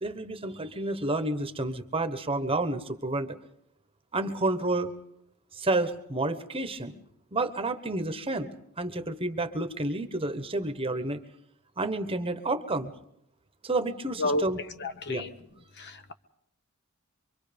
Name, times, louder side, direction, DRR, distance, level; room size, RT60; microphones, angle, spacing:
voice 1, 0.0-3.4 4.1-4.9 5.5-7.0 7.3-8.5 8.8-11.2 11.8-12.9 13.6-14.6 15.1-15.2, right 2 dB, 25° right, 1.1 m, -30 dB
voice 2, 14.8-15.3 15.8-16.1, left 1 dB, 50° left, 1.0 m, -30 dB
25.0 x 24.0 x 5.2 m
head